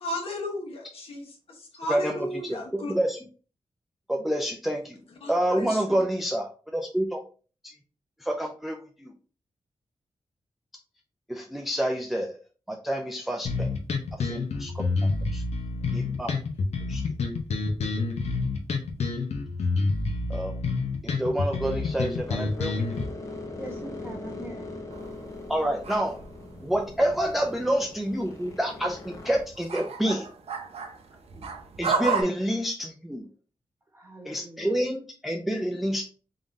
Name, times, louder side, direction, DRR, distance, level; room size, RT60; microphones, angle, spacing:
voice 1, 0.0-2.9 5.2-6.0, left 1 dB, 65° left, 1.2 m, -35 dB
voice 2, 1.9-3.2 4.1-5.0 5.3-7.2 7.6-7.7 8.2-9.1 11.3-12.4 12.7-13.7 14.2-14.8 15.3-15.4 15.9-16.3 16.9-17.0 20.3-20.5 21.0-22.8 25.5-26.2 26.6-30.3 31.8-33.2 34.3-36.0, right 1 dB, ahead, 0.3 m, -28 dB
sound 1, 13.4-23.0, left 3 dB, 90° left, 0.7 m, -28 dB
sound 2, 21.6-29.4, left 2 dB, 30° left, 0.7 m, -41 dB
voice 3, 23.6-24.7 28.3-28.4 31.3-31.4 33.9-34.7, right 1 dB, 20° right, 1.0 m, -43 dB
sound 3, 24.9-27.6 27.9-32.2, right 5 dB, 75° right, 0.7 m, -33 dB
3.7 x 3.6 x 2.6 m
wide cardioid pair, 175°, 11 cm